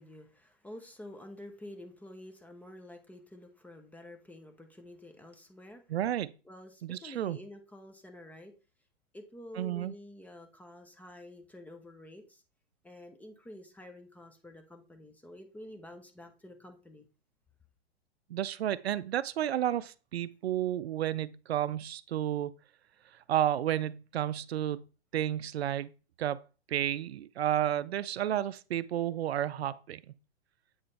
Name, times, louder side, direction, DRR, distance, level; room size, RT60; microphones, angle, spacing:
voice 1, 0.0-5.8 6.5-8.5 9.1-12.4 12.8-17.1, left 1 dB, 5° left, 0.4 m, -49 dB
voice 2, 5.9-6.3 6.8-7.4 9.6-9.9 18.3-22.5 23.1-24.8 25.1-25.9 26.2-26.4 26.7-30.1, right 11 dB, 70° right, 0.5 m, -31 dB
7.7 x 3.9 x 3.2 m
figure-of-eight pair, 105°, 32 cm